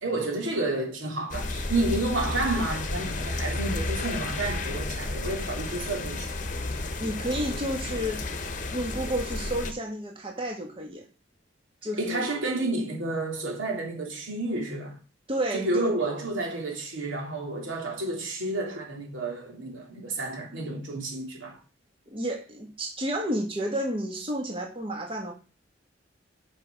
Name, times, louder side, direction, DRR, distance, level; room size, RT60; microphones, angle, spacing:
voice 1, 0.0-6.3 12.0-15.0 15.5-21.6, right 2 dB, 85° right, 3.1 m, -30 dB
sound 1, 1.3-9.7, left 2 dB, 40° left, 1.1 m, -32 dB
voice 2, 7.0-8.2 8.7-11.0 11.8-12.3 15.3-16.0 22.1-25.3, right 1 dB, 25° right, 1.6 m, -31 dB
8.0 x 5.6 x 6.0 m
head